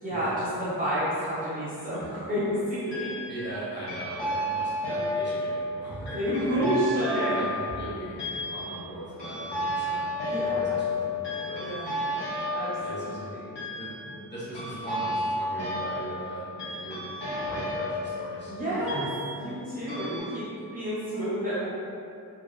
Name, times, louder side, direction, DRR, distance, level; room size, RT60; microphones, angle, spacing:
voice 1, 0.0-3.1 6.1-7.4 10.2-10.7 11.6-11.9 12.5-12.8 13.0-13.1 18.5-19.1 19.4-21.7, equal, 20° right, -13 dB, 0.7 m, -29 dB
sound 1, 1.9-2.1 2.9-3.5 3.9-19.6 19.9-20.2, left 1 dB, 85° left, 0.9 m, -32 dB
voice 2, 3.3-6.7 7.3-10.1 10.3-11.2 11.4-12.1 12.8-13.3 13.8-17.1 17.4-19.2, right 1 dB, 25° left, -10 dB, 1.0 m, -39 dB
2.7 x 2.1 x 2.4 m, 2.6 s
cardioid pair, 40°, 40 cm